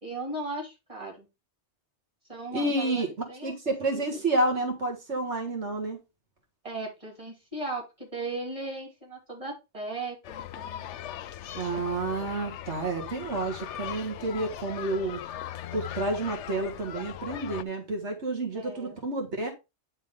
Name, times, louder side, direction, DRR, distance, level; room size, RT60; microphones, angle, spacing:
voice 1, 0.0-1.3 2.3-4.2 6.6-10.8 18.5-19.0, right 2 dB, 30° right, 3.1 m, -37 dB
voice 2, 2.5-3.1 3.4-6.0 11.5-15.2 15.7-19.5, right 2 dB, 80° right, 2.0 m, -30 dB
sound 1, 10.2-17.6, left 11 dB, 85° left, 0.9 m, -39 dB
10.0 x 3.7 x 5.1 m
omnidirectional pair, 1.2 m